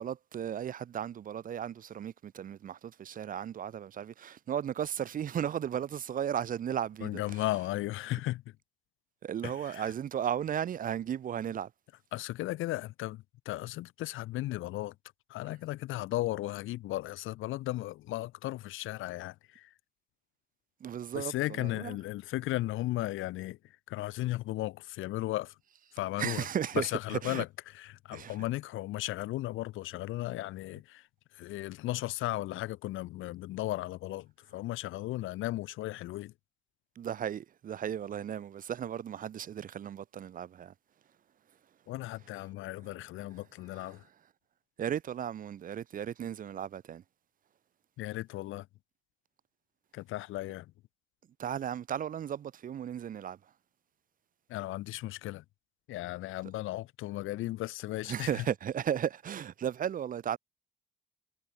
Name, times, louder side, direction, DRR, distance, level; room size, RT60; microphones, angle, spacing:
voice 1, 0.0-7.2 9.2-11.7 20.8-21.9 26.2-27.4 28.1-28.3 37.0-40.7 44.8-47.0 51.4-53.4 58.1-60.4, right 9 dB, 45° right, 0.5 m, -35 dB
voice 2, 7.0-8.4 9.4-9.9 12.1-14.9 15.3-19.7 21.1-25.5 25.9-26.5 26.7-31.1 31.3-36.3 41.9-44.0 48.0-48.7 49.9-50.7 54.5-55.4 55.9-58.5, left 16 dB, 85° left, 0.8 m, -36 dB
cardioid pair, 90°, 20 cm